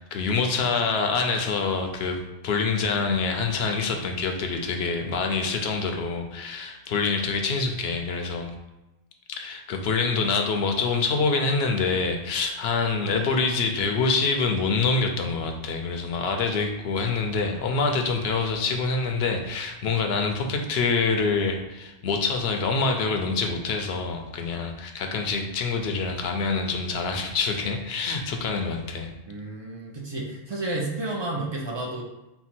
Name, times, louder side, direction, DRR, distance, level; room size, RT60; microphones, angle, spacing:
voice 1, 0.0-8.5 9.3-29.1, left 4 dB, 65° left, 4 dB, 0.7 m, -26 dB
voice 2, 29.3-32.0, right 2 dB, 45° right, -2 dB, 0.3 m, -31 dB
4.4 x 2.2 x 4.3 m, 0.99 s
omnidirectional pair, 1.3 m